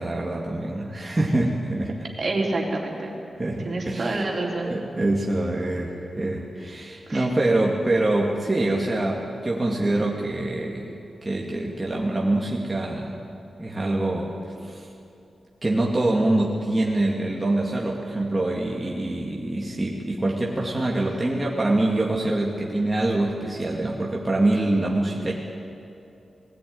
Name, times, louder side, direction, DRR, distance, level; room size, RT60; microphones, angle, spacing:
voice 1, 0.0-2.1 3.4-4.2 4.6-10.9 11.2-13.2 13.6-14.3 14.6-14.9 15.6-25.3, right 2 dB, 20° right, -3 dB, 2.4 m, -25 dB
voice 2, 2.2-3.1 3.6-4.8 7.1-7.3, right 2 dB, 50° right, -1 dB, 3.9 m, -27 dB
20.0 x 16.5 x 9.6 m, 2.7 s
wide cardioid pair, 100°, 0 cm